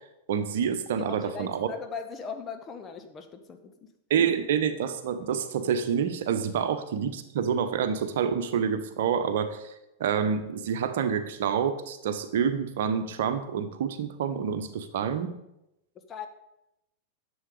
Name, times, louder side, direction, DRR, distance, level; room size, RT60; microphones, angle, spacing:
voice 1, 0.3-1.7 4.1-9.7 10.0-15.3, right 7 dB, 55° right, 9 dB, 1.0 m, -27 dB
voice 2, 1.0-3.9 16.1-16.3, left 6 dB, 25° left, 6 dB, 1.1 m, -39 dB
11.0 x 7.3 x 4.9 m, 0.87 s
figure-of-eight pair, 90°, 0 cm